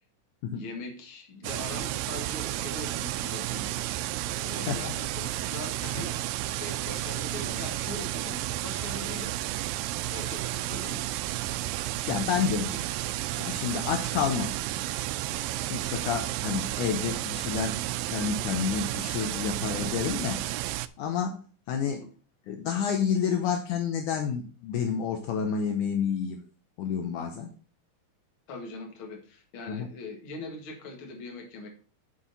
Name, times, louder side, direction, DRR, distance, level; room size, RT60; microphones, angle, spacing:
voice 1, 0.5-3.7 4.4-6.2 6.6-9.4 10.1-11.1 12.2-12.6 21.8-22.1 28.5-31.7, left 2 dB, 45° left, 3 dB, 2.3 m, -41 dB
sound 1, 1.4-20.9, right 15 dB, 85° right, 2.2 m, -32 dB
voice 2, 11.7-12.8 13.4-14.5 15.7-17.8 18.1-20.4 21.0-21.4 21.7-22.1 22.5-26.4 26.8-27.5 29.7-29.9, left 7 dB, 75° left, 5 dB, 2.3 m, -29 dB
9.8 x 5.8 x 4.0 m, 0.37 s
omnidirectional pair, 3.9 m